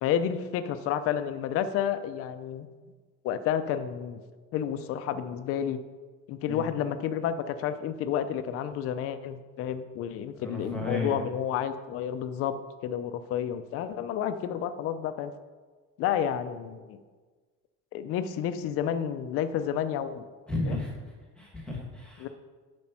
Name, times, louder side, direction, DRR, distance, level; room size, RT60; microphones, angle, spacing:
voice 1, 0.0-2.7 3.2-4.2 4.5-5.8 6.3-12.5 12.8-15.3 16.0-17.0 17.9-20.2 20.7-20.8 22.2-22.3, left 9 dB, 45° left, 10 dB, 0.5 m, -30 dB
voice 2, 10.3-11.2 20.5-22.3, left 2 dB, 5° left, -2 dB, 1.3 m, -34 dB
7.4 x 5.2 x 5.8 m, 1.4 s
cardioid pair, 180°, 31 cm